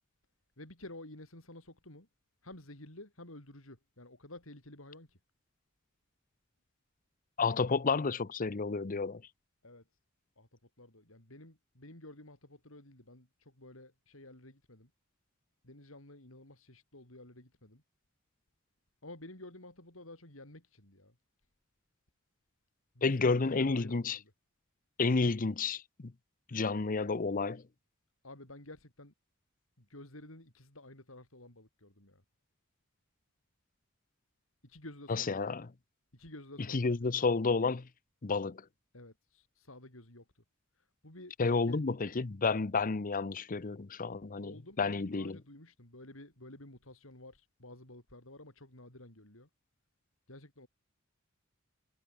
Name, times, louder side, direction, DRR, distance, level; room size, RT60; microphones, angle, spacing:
voice 1, 0.6-2.1 2.4-5.2 9.6-9.8 10.4-10.5 10.8-14.9 15.6-17.8 19.0-21.2 22.9-24.2 28.2-29.1 29.8-32.2 34.6-35.5 36.1-37.0 38.9-40.3 41.0-41.3 41.7-41.8 44.4-49.5 50.3-50.7, left 1 dB, 70° left, 6.0 m, -51 dB
voice 2, 7.4-9.2 23.0-24.2 25.0-26.1 26.5-27.6 35.1-35.7 36.7-37.9 38.2-38.6 41.4-45.4, left 4 dB, 40° left, 0.7 m, -31 dB
head